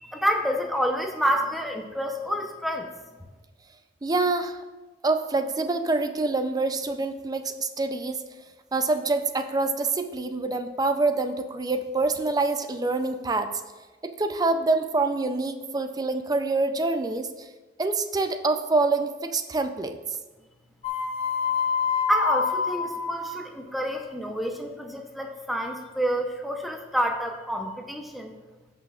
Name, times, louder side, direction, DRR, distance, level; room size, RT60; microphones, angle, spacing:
voice 1, 0.0-2.9 22.1-28.3, equal, ahead, 2 dB, 0.8 m, -28 dB
voice 2, 4.0-4.6 5.0-8.2 8.7-13.5 14.0-17.5 17.8-20.0, right 3 dB, 20° right, 8 dB, 0.4 m, -26 dB
sound 1, 20.8-23.4, left 6 dB, 35° left, 0.8 m, -26 dB
16.5 x 5.8 x 2.4 m, 1.2 s
head